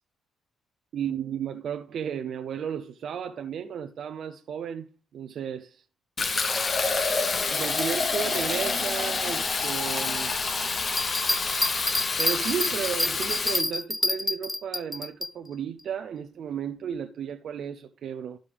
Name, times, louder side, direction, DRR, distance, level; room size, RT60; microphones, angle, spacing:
voice 1, 0.9-5.8 7.5-10.3 12.2-18.4, right 8 dB, 65° right, 0.6 m, -34 dB
Fill (with liquid), 6.2-13.6, left 4 dB, 40° left, 0.9 m, -27 dB
sound 1, 11.0-15.3, left 2 dB, 10° left, 0.3 m, -28 dB
12.5 x 5.2 x 3.5 m
cardioid pair, 90°, 0 cm